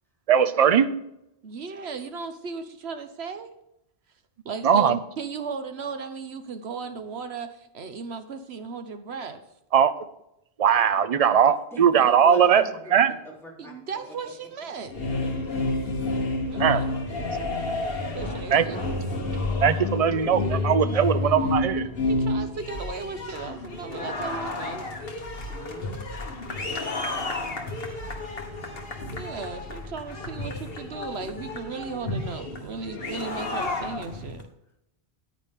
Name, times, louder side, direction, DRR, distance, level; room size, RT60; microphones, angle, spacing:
voice 1, 0.3-0.9 4.6-5.0 9.7-9.9 10.6-12.6 12.9-13.1 16.6-16.9 18.5-19.1 19.6-21.9, right 8 dB, 45° right, 12 dB, 0.6 m, -20 dB
voice 2, 1.4-3.5 4.4-9.4 13.6-14.9 16.5-17.0 18.1-18.9 22.1-24.9 29.2-34.4, right 5 dB, 80° right, 8 dB, 1.3 m, -36 dB
voice 3, 11.7-12.9 13.4-13.7 14.1-14.3 15.0-15.5 15.8-15.9 16.3-16.6 18.4-18.5 23.0-23.1 25.5-26.0, equal, ahead, -5 dB, 3.5 m, -45 dB
sound 1, 14.8-34.4, left 2 dB, 65° left, 1.7 m, -30 dB
9.8 x 9.6 x 3.7 m, 0.82 s
omnidirectional pair, 1.1 m